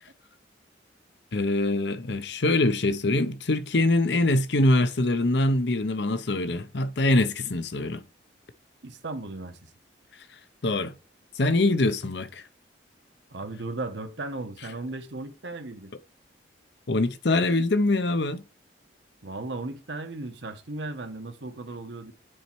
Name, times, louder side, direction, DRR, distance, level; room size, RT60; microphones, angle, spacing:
voice 1, 1.3-8.0 10.6-10.9 11.4-12.4 16.9-18.4, left 2 dB, 65° left, 0.8 m, -24 dB
voice 2, 8.8-9.7 13.3-15.9 19.2-22.1, right 2 dB, 75° right, 1.2 m, -36 dB
9.8 x 4.2 x 4.6 m
head